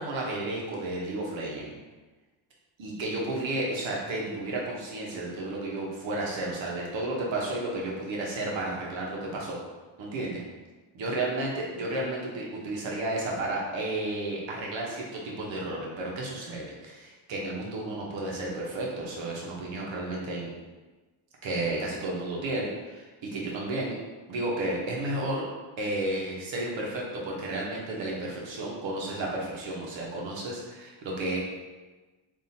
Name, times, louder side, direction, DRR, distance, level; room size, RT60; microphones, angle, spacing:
voice 1, 0.0-1.7 2.8-9.6 10.0-10.4 10.9-20.5 21.4-23.9 24.3-25.4 25.8-31.4, right 2 dB, 75° right, -3 dB, 1.0 m, -32 dB
3.6 x 2.6 x 2.7 m, 1.2 s
cardioid pair, 95°, 47 cm